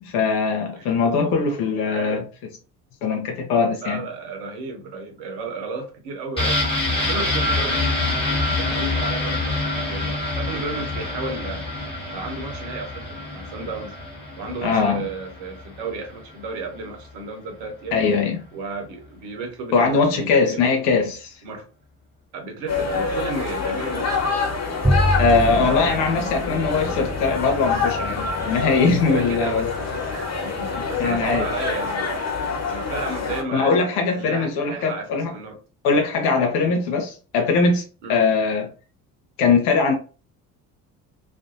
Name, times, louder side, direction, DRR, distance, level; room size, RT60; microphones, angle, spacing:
voice 1, 0.0-2.3 3.0-4.1 14.6-15.1 17.9-18.4 19.7-21.3 25.2-29.7 31.0-31.5 33.5-35.3 35.8-37.8 38.1-38.7 39.4-39.9, left 4 dB, 60° left, 0.7 m, -21 dB
voice 2, 1.9-2.3 3.8-6.6 7.0-7.8 8.5-11.7 12.1-14.0 14.3-18.0 18.5-20.8 21.4-21.7 22.3-24.2 29.1-32.1 32.7-35.6 38.0-38.2, right 4 dB, 55° right, 0.9 m, -33 dB
sound 1, 6.4-16.0 16.3-16.4, left 2 dB, 10° left, 1.2 m, -26 dB
sound 2, 22.7-33.4, left 4 dB, 30° left, 1.0 m, -26 dB
Bowed string instrument, 24.8-31.3, equal, 5° right, 0.5 m, -28 dB
2.5 x 2.1 x 2.7 m
figure-of-eight pair, 55°, 49 cm